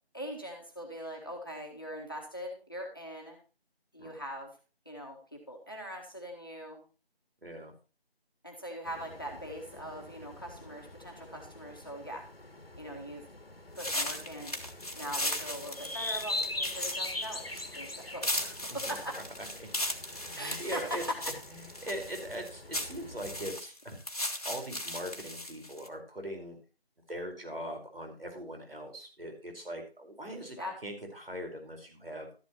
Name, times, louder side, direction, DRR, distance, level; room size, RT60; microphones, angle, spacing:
voice 1, 0.1-3.4 3.9-4.5 4.8-6.8 8.4-12.2 12.8-13.2 13.7-14.5 14.9-19.2 20.3-20.8 21.2-21.3 30.6-30.7, equal, 20° left, 0 dB, 1.7 m, -42 dB
voice 2, 7.4-7.7 18.9-19.0 19.6-19.7 20.0-21.0 21.5-24.0 24.4-26.6 27.1-30.6 30.8-32.3, equal, 65° right, 3 dB, 4.7 m, -41 dB
sound 1, 8.8-23.5, left 2 dB, 65° left, 1.5 m, -42 dB
sound 2, 13.8-25.9, left 1 dB, 35° left, 1.5 m, -37 dB
13.0 x 11.0 x 3.0 m, 0.34 s
figure-of-eight pair, 175°, 31 cm